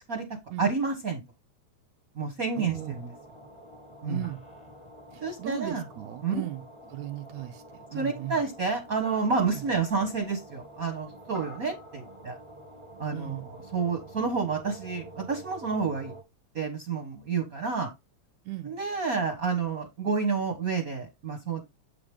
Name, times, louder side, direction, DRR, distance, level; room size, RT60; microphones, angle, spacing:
voice 1, 0.6-1.2 2.1-3.1 4.0-4.2 5.2-5.8 6.2-6.4 7.9-12.4 13.0-16.1 16.5-17.9 18.6-21.6, right 5 dB, 45° right, 1.2 m, -29 dB
voice 2, 2.6-3.0 4.1-4.4 5.1-6.6 6.9-8.4 9.6-9.7 13.1-13.5 18.5-18.7, right 15 dB, 75° right, 1.9 m, -36 dB
sound 1, 2.7-16.2, right 1 dB, 20° left, 0.7 m, -48 dB
8.0 x 5.1 x 3.4 m
omnidirectional pair, 3.5 m